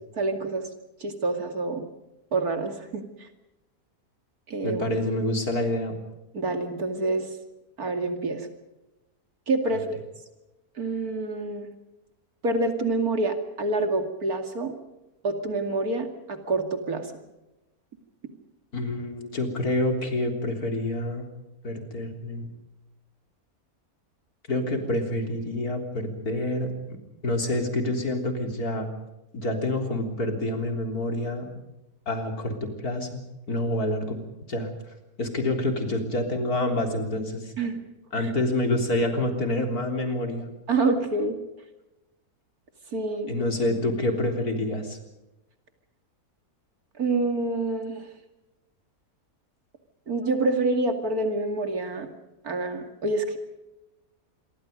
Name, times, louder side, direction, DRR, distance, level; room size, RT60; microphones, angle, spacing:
voice 1, 0.1-0.7 1.0-1.8 2.3-3.3 4.5-4.8 6.3-7.3 7.8-8.5 9.5-10.0 10.8-11.7 12.4-14.7 15.2-17.1 37.6-37.8 38.2-38.3 40.7-41.4 42.9-43.3 47.0-48.1 50.1-52.1 52.4-53.4, right 2 dB, 75° right, 6 dB, 2.9 m, -27 dB
voice 2, 4.6-5.9 9.7-9.8 18.7-21.3 21.6-22.5 24.5-26.7 27.2-28.9 29.3-31.6 32.1-33.2 33.5-34.2 34.5-34.7 35.2-37.5 38.1-40.5 43.3-45.0, left 1 dB, 80° left, 4 dB, 4.1 m, -27 dB
27.0 x 23.5 x 5.3 m, 0.97 s
omnidirectional pair, 1.6 m